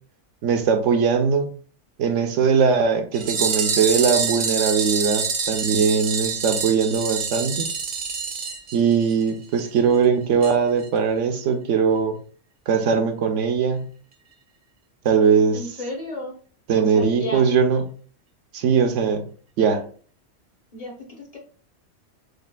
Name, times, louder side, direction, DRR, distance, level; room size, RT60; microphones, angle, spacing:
voice 1, 0.4-1.5 2.0-7.7 8.7-12.2 12.7-13.9 15.0-15.6 16.7-17.8 18.5-19.2 19.6-19.9, right 6 dB, 75° right, 6 dB, 1.0 m, -20 dB
sound 1, 3.1-9.3 9.6-9.7 9.9-10.0 10.4-10.5 10.8-10.9, right 5 dB, 55° right, 0.7 m, -26 dB
voice 2, 15.5-16.4 16.8-17.5 20.7-21.4, left 2 dB, 35° left, 0 dB, 0.8 m, -33 dB
6.5 x 2.4 x 2.2 m, 0.42 s
omnidirectional pair, 1.3 m